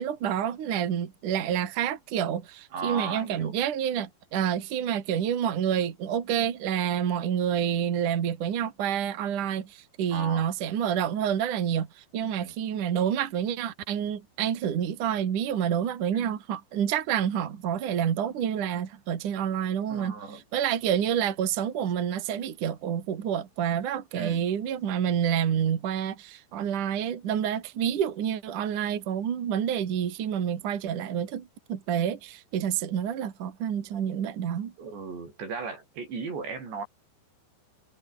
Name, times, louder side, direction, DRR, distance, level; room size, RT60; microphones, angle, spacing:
voice 1, 0.0-34.7, right 9 dB, 55° right, 3.5 m, -28 dB
voice 2, 2.7-3.5 10.1-10.5 12.3-12.5 16.1-16.3 19.9-20.4 24.1-24.4 34.8-36.9, right 4 dB, 85° right, 9.7 m, -36 dB
omnidirectional pair, 4.9 m